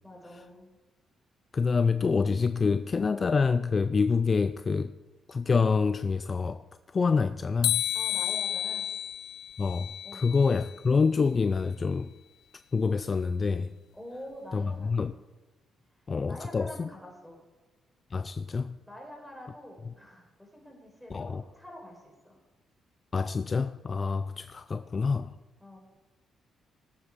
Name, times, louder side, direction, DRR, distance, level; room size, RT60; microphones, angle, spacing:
voice 1, 0.0-0.7 7.9-8.8 10.0-10.3 13.9-15.0 15.9-17.4 18.9-22.4 25.6-25.8, left 1 dB, ahead, 4.7 m, -46 dB
voice 2, 1.5-4.9 5.3-6.6 6.9-7.9 9.6-12.1 12.7-13.7 14.5-15.1 16.1-16.9 18.1-18.8 21.1-21.4 23.1-25.4, left 5 dB, 35° left, 0.4 m, -27 dB
sound 1, 7.6-10.7, left 12 dB, 90° left, 0.5 m, -31 dB
18.5 x 8.2 x 4.9 m
cardioid pair, 90°, 0 cm